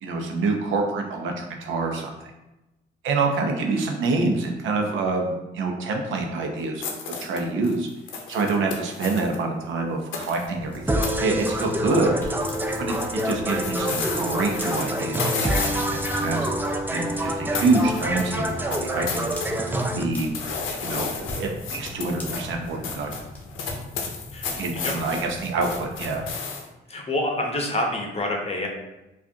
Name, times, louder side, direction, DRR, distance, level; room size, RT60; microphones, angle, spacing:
voice 1, 0.0-2.1 3.0-7.9 8.3-12.1 12.8-16.5 16.9-19.3 20.0-20.3 20.8-23.1 24.6-26.2, right 3 dB, 75° right, 2 dB, 0.7 m, -26 dB
sound 1, 6.8-9.4 10.1-10.5 11.0-11.1 11.4-12.0 12.3-17.3 17.5-19.5 19.8-26.7, left 5 dB, 90° left, 0.6 m, -33 dB
sound 2, 10.4-26.3, left 1 dB, 10° left, 1.0 m, -39 dB
sound 3, 10.9-20.0, right 1 dB, 10° right, 0.4 m, -27 dB
voice 2, 24.3-24.9 25.2-25.4 26.9-28.7, left 1 dB, 30° left, 1 dB, 0.8 m, -28 dB
4.8 x 2.4 x 2.8 m, 0.98 s
cardioid pair, 90°, 20 cm